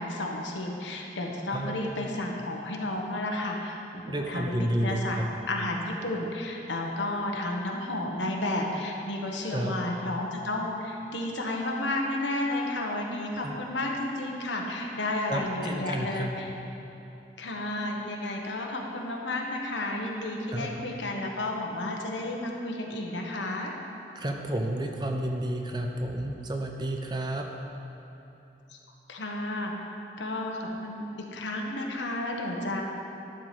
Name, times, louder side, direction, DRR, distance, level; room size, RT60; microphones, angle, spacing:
voice 1, 0.0-3.8 4.1-5.2 5.5-16.5 17.4-23.7 28.7-28.8 29.1-29.7 30.2-31.0 31.3-32.8, left 1 dB, 80° left, 0 dB, 1.2 m, -32 dB
voice 2, 4.0-5.0 9.5-9.7 13.4-13.6 15.3-16.3 20.5-20.7 24.1-27.5, right 1 dB, 25° right, 3 dB, 0.7 m, -31 dB
11.5 x 4.9 x 7.6 m, 2.9 s
head